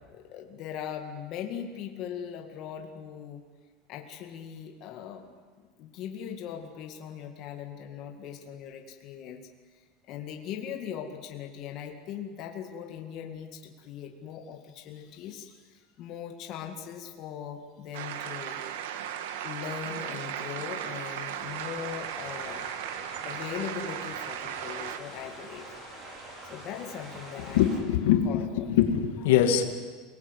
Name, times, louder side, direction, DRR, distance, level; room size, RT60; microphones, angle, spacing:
voice 1, 0.1-3.4 3.9-9.5 10.1-22.7 23.3-25.9 26.4-27.7 28.3-28.4, left 8 dB, 40° left, 3 dB, 2.2 m, -40 dB
sound 1, 17.9-25.0, right 10 dB, 85° right, 1.6 m, -36 dB
sound 2, 21.4-27.8, right 1 dB, 35° right, 5.5 m, -45 dB
voice 2, 27.5-29.6, left 10 dB, 90° left, 5 dB, 2.5 m, -23 dB
28.0 x 19.0 x 8.3 m, 1.5 s
supercardioid pair, 170°, 0 cm